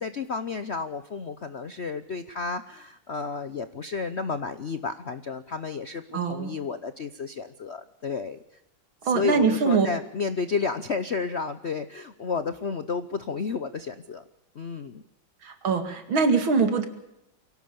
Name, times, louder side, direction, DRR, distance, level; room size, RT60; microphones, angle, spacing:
voice 1, 0.0-8.4 9.0-14.2 14.5-15.0, left 5 dB, 55° left, 11 dB, 0.7 m, -31 dB
voice 2, 6.1-6.5 9.1-9.9 15.4-16.9, right 5 dB, 75° right, 7 dB, 3.0 m, -23 dB
24.0 x 17.0 x 6.9 m, 0.84 s
omnidirectional pair, 2.2 m